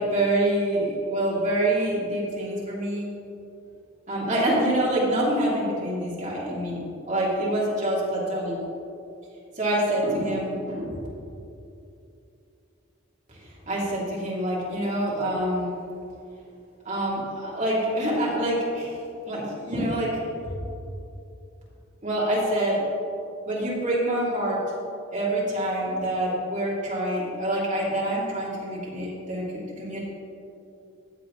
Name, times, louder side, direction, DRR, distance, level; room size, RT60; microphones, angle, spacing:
voice 1, 0.0-3.1 4.1-8.6 9.6-11.0 13.3-15.8 16.8-18.9 19.3-20.5 22.0-22.8 23.5-24.6 25.1-30.0, right 1 dB, 35° right, -6 dB, 2.7 m, -26 dB
14.5 x 8.0 x 3.9 m, 2.7 s
head